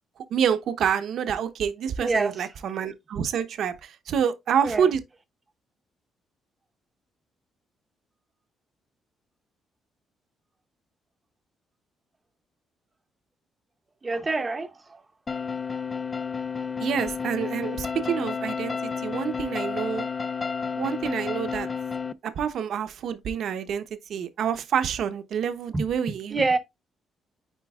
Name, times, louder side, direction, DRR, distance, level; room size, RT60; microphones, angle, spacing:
voice 1, 0.3-5.0 16.8-20.1 20.8-21.7 22.2-23.8 24.1-26.6, right 8 dB, 55° right, 0.8 m, -27 dB
voice 2, 2.0-2.3 4.6-4.9 14.0-15.0 25.7-25.8 26.3-26.6, right 3 dB, 20° right, 0.7 m, -26 dB
sound 1, 15.3-22.1, left 6 dB, 20° left, 0.3 m, -31 dB
9.2 x 4.4 x 2.4 m
cardioid pair, 170°, 0 cm